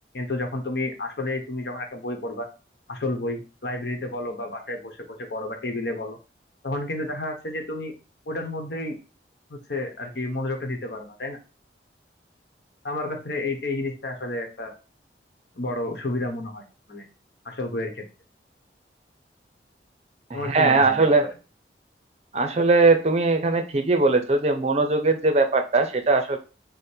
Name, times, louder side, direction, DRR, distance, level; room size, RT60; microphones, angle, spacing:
voice 1, 0.1-2.5 2.9-6.2 6.6-7.9 8.3-9.0 9.5-11.4 12.8-14.7 15.6-16.6 16.9-17.1 17.4-18.0 20.3-21.1, left 2 dB, 70° left, 3 dB, 1.0 m, -31 dB
voice 2, 20.3-21.3 22.3-26.4, right 3 dB, 35° right, 7 dB, 0.5 m, -20 dB
5.0 x 2.1 x 4.4 m, 0.33 s
head